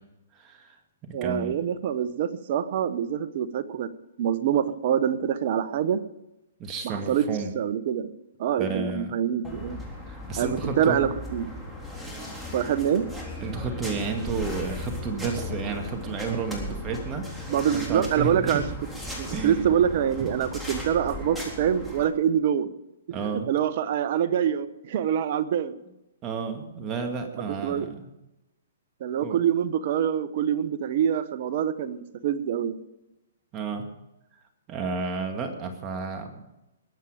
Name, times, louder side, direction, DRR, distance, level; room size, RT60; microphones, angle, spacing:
voice 1, 0.3-0.8 1.2-1.6 6.6-7.5 8.6-9.2 10.1-11.1 13.4-18.6 19.3-19.7 23.1-23.5 26.2-28.1 29.2-29.4 33.5-33.8 34.7-36.4, right 4 dB, 25° right, 4 dB, 2.1 m, -32 dB
voice 2, 1.1-3.9 4.2-6.0 6.8-7.2 7.5-8.1 8.4-9.8 10.4-11.5 12.5-13.1 17.5-18.6 19.1-22.7 23.1-25.8 27.6-27.9 29.0-32.8, right 9 dB, 50° right, 13 dB, 1.1 m, -25 dB
sound 1, 9.4-22.0, left 1 dB, 5° right, 3.7 m, -37 dB
20.5 x 8.5 x 5.0 m, 0.92 s
hypercardioid pair, 135°, 0 cm